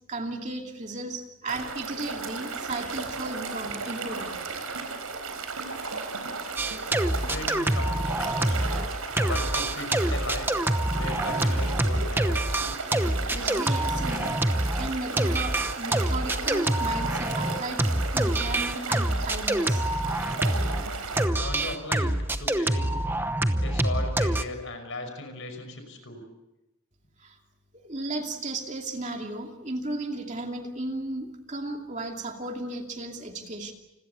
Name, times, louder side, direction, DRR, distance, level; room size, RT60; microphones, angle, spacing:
voice 1, 0.0-4.4 13.3-14.3 14.8-19.8 27.2-27.4 27.7-33.7, right 2 dB, 30° right, 3 dB, 2.6 m, -35 dB
sound 1, 1.5-21.3, right 4 dB, 85° right, 4.4 m, -35 dB
sound 2, 6.6-8.9 9.2-20.8 21.2-24.4, right 1 dB, 10° right, 0.9 m, -26 dB
voice 2, 7.1-8.8 9.3-10.5 10.9-12.6 21.4-23.0 23.6-26.2, left 2 dB, 60° left, 6 dB, 5.7 m, -37 dB
30.0 x 21.5 x 7.0 m, 0.96 s
head